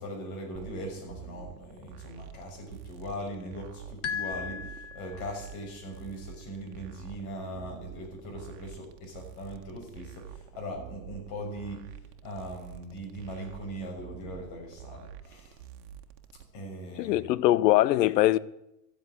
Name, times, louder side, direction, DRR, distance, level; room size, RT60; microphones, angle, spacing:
voice 1, 0.0-11.9 12.2-15.6 16.5-17.3, equal, 50° left, 6.3 m, -40 dB
sound 1, 0.5-16.4, right 9 dB, 70° right, 1.6 m, -47 dB
sound 2, 4.0-5.6, left 7 dB, 30° left, 1.1 m, -36 dB
voice 2, 17.0-18.4, left 15 dB, 90° left, 0.8 m, -22 dB
13.0 x 8.1 x 9.7 m
supercardioid pair, 130°, 48 cm